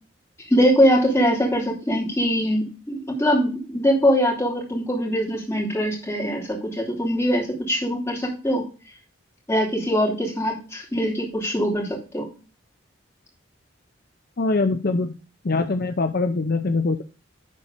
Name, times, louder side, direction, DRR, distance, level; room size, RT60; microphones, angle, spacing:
voice 1, 0.5-8.6 9.5-12.3, equal, 15° left, -2 dB, 2.8 m, -22 dB
voice 2, 14.4-15.1 15.4-17.0, left 3 dB, 50° left, 7 dB, 0.6 m, -23 dB
11.0 x 4.2 x 4.9 m, 0.33 s
head